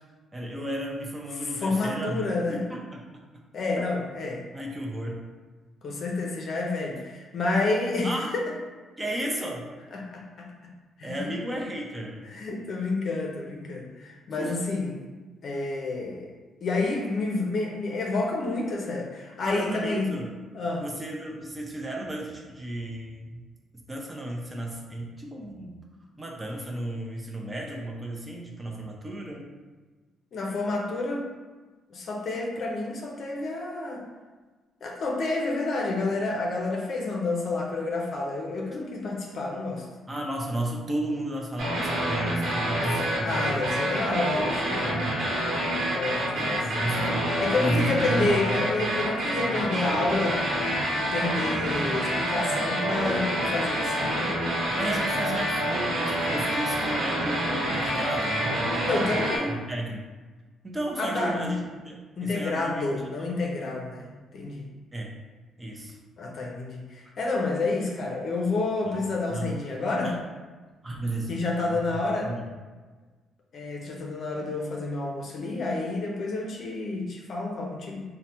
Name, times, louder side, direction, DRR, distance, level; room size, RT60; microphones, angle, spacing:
voice 1, 0.3-2.2 2.5-3.0 3.8-3.9 4.5-5.2 8.0-8.3 9.0-9.7 11.0-12.2 14.4-14.6 19.5-20.3 20.8-23.4 23.7-25.8 26.2-29.5 40.1-43.8 44.8-45.2 46.4-48.9 54.8-59.1 59.5-60.0 60.6-62.9 64.9-65.1 65.6-66.0 68.9-69.0 69.3-69.6 70.0-70.2 70.8-71.3 71.6-71.8 72.2-72.4, right 1 dB, 20° right, -1 dB, 0.5 m, -33 dB
voice 2, 1.4-2.6 3.5-4.4 5.8-8.4 9.9-10.5 11.0-11.3 12.3-15.0 15.4-16.3 16.6-20.1 20.5-20.8 30.3-31.3 31.9-34.0 34.8-39.9 43.2-45.1 45.9-46.7 47.4-50.5 50.9-54.3 58.9-59.6 61.0-61.5 62.2-64.7 66.2-70.1 71.3-72.3 73.5-78.0, left 3 dB, 60° left, 0 dB, 0.5 m, -29 dB
sound 1, 41.6-59.4, right 1 dB, 80° right, 0.8 m, -27 dB
3.1 x 2.1 x 2.8 m, 1.3 s
cardioid pair, 90°, 0 cm